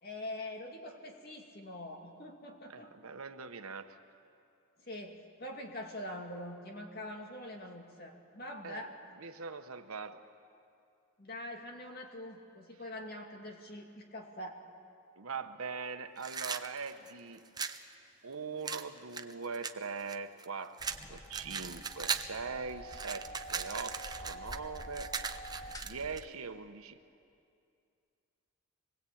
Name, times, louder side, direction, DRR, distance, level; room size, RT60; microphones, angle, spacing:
voice 1, 0.0-2.9 4.8-9.0 11.2-14.6, left 1 dB, 45° left, 2 dB, 2.5 m, -44 dB
voice 2, 2.7-4.0 8.6-8.9 9.2-10.2 15.2-17.5 18.2-20.8 21.1-25.1 25.8-27.0, right 5 dB, 85° right, 8 dB, 1.2 m, -41 dB
sound 1, 16.2-17.8 18.7-20.5 20.8-22.4 22.7-26.2, right 6 dB, 20° right, 0.6 m, -38 dB
sound 2, 20.8-26.3, equal, 15° left, 0.8 m, -47 dB
25.5 x 20.0 x 8.7 m, 2.4 s
head